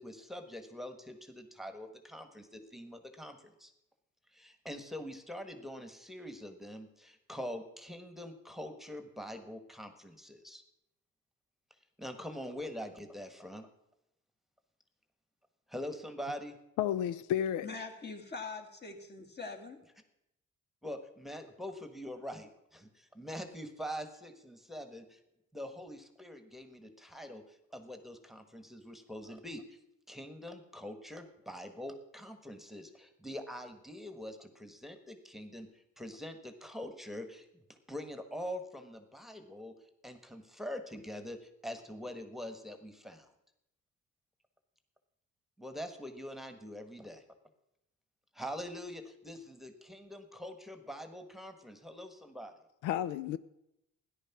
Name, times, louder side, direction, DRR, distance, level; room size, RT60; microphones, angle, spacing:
voice 1, 0.0-3.7 4.3-10.6 12.0-13.7 15.7-16.6 20.8-25.2 25.5-29.8 30.1-39.7 40.0-43.3 45.6-47.2 48.3-52.5, equal, ahead, 1.5 m, -44 dB
voice 2, 16.8-17.7 52.8-53.4, left 10 dB, 90° left, 0.5 m, -31 dB
voice 3, 17.6-19.8, left 4 dB, 35° left, 2.3 m, -43 dB
13.0 x 10.5 x 6.0 m
cardioid pair, 90°, 30 cm